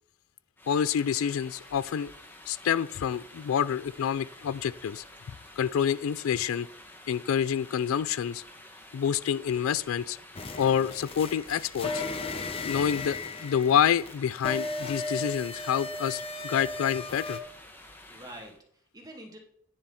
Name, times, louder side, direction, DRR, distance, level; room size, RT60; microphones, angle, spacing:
sound 1, 0.6-18.6, left 1 dB, 10° left, 1.1 m, -50 dB
voice 1, 0.7-2.1 2.5-5.0 5.6-6.7 7.1-8.4 8.9-10.2 10.6-12.0 12.6-17.4, left 8 dB, 75° left, 18 dB, 0.3 m, -27 dB
sound 2, 10.3-17.4, left 3 dB, 25° left, 0.7 m, -36 dB
voice 2, 18.1-19.4, right 1 dB, 20° right, 2 dB, 1.7 m, -47 dB
9.6 x 7.2 x 4.2 m, 0.67 s
head